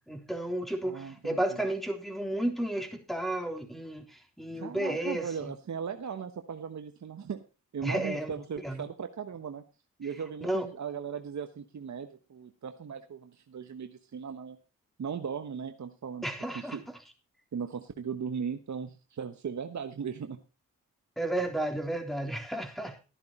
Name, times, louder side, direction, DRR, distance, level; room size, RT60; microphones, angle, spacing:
voice 1, 0.1-5.5 7.8-8.3 8.6-8.8 10.4-10.7 16.2-16.8 21.2-23.0, right 1 dB, ahead, 5 dB, 3.5 m, -32 dB
voice 2, 0.8-1.6 4.5-7.4 7.7-9.6 10.0-14.6 15.0-16.3 16.5-16.8 17.5-20.4, right 6 dB, 55° right, 7 dB, 1.2 m, -38 dB
12.5 x 10.5 x 4.3 m, 0.31 s
cardioid pair, 50°, 34 cm